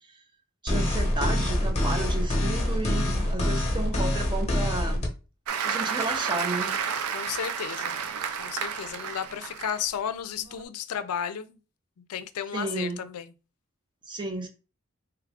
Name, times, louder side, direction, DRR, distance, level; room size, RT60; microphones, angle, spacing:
voice 1, 0.6-5.1 5.6-6.7 12.5-13.0 14.1-14.5, right 2 dB, 20° right, 0.6 m, -32 dB
sound 1, 0.7-5.1, left 1 dB, 30° left, 0.8 m, -25 dB
Applause, 5.5-9.9 10.4-10.6, right 7 dB, 75° right, 0.4 m, -31 dB
voice 2, 7.1-8.0 8.4-11.6 12.1-13.3, left 8 dB, 85° left, 0.4 m, -33 dB
3.4 x 2.4 x 3.4 m
head